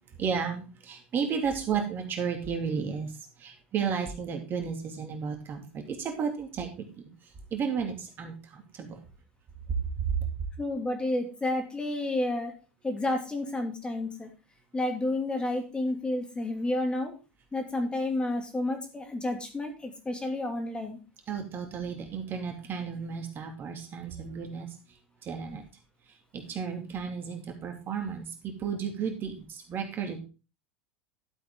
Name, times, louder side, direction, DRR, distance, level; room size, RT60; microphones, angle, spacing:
voice 1, 0.2-3.1 3.4-6.8 7.5-9.0 21.3-24.7 25.2-25.6 26.3-30.2, right 6 dB, 35° right, 3 dB, 2.8 m, -33 dB
voice 2, 10.6-12.5 12.8-14.3 14.7-17.1 17.5-21.0, left 2 dB, 15° left, 4 dB, 2.6 m, -30 dB
12.0 x 7.8 x 3.8 m, 0.31 s
hypercardioid pair, 80°, 6 cm